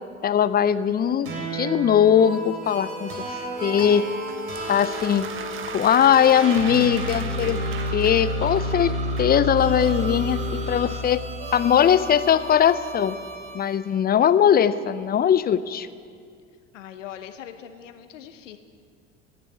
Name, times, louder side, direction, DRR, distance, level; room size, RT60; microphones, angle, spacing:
voice 1, 0.2-4.0 4.7-5.3 5.7-7.6 7.9-11.2 11.5-13.1 13.5-15.9, left 9 dB, 25° left, 14 dB, 0.6 m, -20 dB
sound 1, 1.2-13.8, equal, 65° right, 3.5 m, -31 dB
sound 2, 4.3-9.5, right 10 dB, 35° right, 0.6 m, -40 dB
sound 3, 4.5-11.0, right 3 dB, 20° right, 2.6 m, -39 dB
voice 2, 16.7-18.6, left 10 dB, 80° left, 8 dB, 1.0 m, -41 dB
17.0 x 6.9 x 8.4 m, 2.2 s
hypercardioid pair, 70°, 37 cm